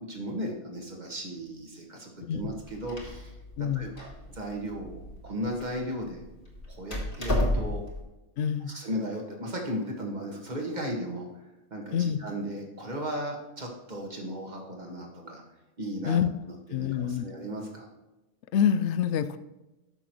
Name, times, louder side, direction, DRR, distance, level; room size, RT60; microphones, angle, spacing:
voice 1, 0.1-3.4 3.7-6.2 6.7-7.8 8.7-11.3 11.7-15.4 15.8-16.2 16.7-17.9, equal, 35° right, 1 dB, 1.7 m, -36 dB
voice 2, 2.2-2.5 3.6-3.9 8.4-8.7 11.9-12.2 16.0-16.3 16.7-17.2 18.5-19.4, left 8 dB, 65° left, 13 dB, 0.8 m, -26 dB
Door, 2.4-8.0, left 1 dB, 40° left, 2.2 m, -33 dB
13.5 x 6.2 x 3.1 m, 0.99 s
omnidirectional pair, 1.4 m